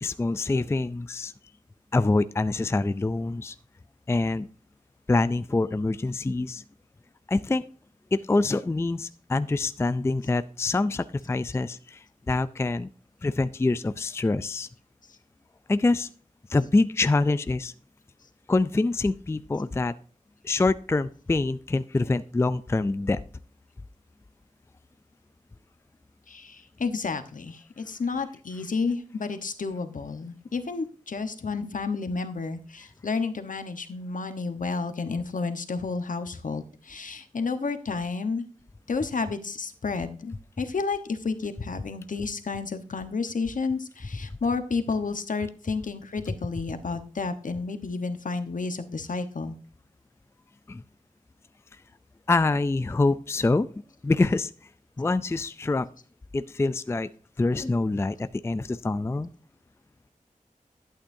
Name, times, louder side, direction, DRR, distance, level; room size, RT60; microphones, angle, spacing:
voice 1, 0.0-1.3 1.9-3.5 4.1-4.5 5.1-6.6 7.3-7.6 8.1-12.9 13.2-14.7 15.7-16.1 16.5-17.7 18.5-19.9 20.4-23.2 50.7-50.8 52.3-53.7 54.0-54.5 55.0-55.9 56.3-57.1 57.4-59.3, left 3 dB, 20° left, 13 dB, 0.4 m, -25 dB
voice 2, 26.3-38.5 38.9-49.5, left 4 dB, 70° left, 9 dB, 1.1 m, -31 dB
11.5 x 8.8 x 2.7 m, 0.42 s
wide cardioid pair, 95°, 14 cm